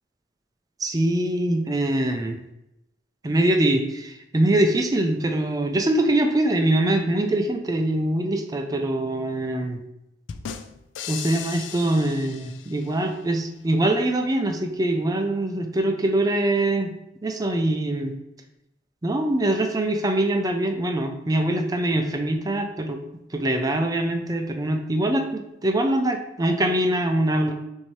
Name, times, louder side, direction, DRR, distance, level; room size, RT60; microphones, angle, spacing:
voice 1, 0.8-2.4 3.2-9.8 11.1-16.9 17.2-18.1 19.0-23.0 23.3-27.5, right 1 dB, 20° right, 4 dB, 0.4 m, -23 dB
sound 1, 10.3-13.1, left 8 dB, 80° left, 0.3 m, -37 dB
6.2 x 2.7 x 3.1 m, 0.88 s
head